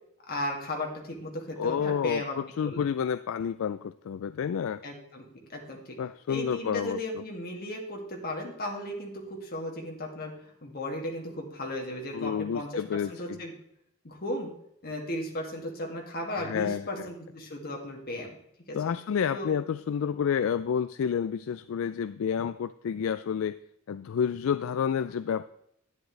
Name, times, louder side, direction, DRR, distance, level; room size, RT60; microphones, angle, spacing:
voice 1, 0.3-2.4 2.6-2.9 4.8-5.2 5.5-6.0 6.3-12.7 13.1-13.5 14.0-14.5 14.8-18.3 18.7-18.8 19.3-19.5, left 1 dB, 45° left, 1 dB, 2.1 m, -35 dB
voice 2, 1.6-4.8 6.0-7.0 12.1-13.4 16.4-17.1 18.7-23.6 23.9-25.4, left 7 dB, 65° left, 13 dB, 0.3 m, -29 dB
10.5 x 10.0 x 3.2 m, 0.73 s
head